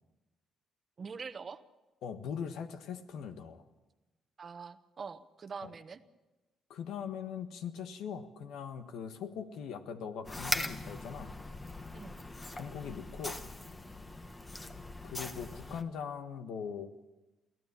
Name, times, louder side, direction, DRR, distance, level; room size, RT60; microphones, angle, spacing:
voice 1, 1.0-1.6 4.4-6.0 11.9-12.2, right 5 dB, 40° right, 12 dB, 1.0 m, -44 dB
voice 2, 2.0-3.6 5.6-5.7 6.7-11.3 12.5-13.4 15.0-17.1, left 7 dB, 85° left, 8 dB, 1.5 m, -41 dB
sound 1, 10.2-15.8, left 2 dB, 20° left, 1.4 m, -40 dB
23.5 x 15.5 x 7.0 m, 1.1 s
cardioid pair, 90°, 0 cm